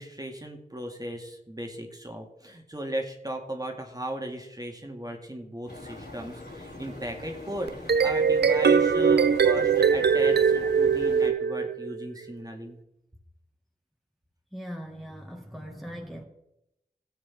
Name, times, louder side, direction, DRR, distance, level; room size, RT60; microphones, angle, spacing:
voice 1, 0.0-12.8, equal, 20° right, 2 dB, 2.0 m, -37 dB
sound 1, 5.7-11.3, left 2 dB, 75° left, 4.3 m, -43 dB
sound 2, 7.7-12.0, right 6 dB, 75° right, 0.5 m, -22 dB
voice 2, 14.5-16.2, equal, ahead, 1 dB, 1.8 m, -40 dB
17.0 x 7.9 x 3.6 m, 0.84 s
wide cardioid pair, 55°, 17 cm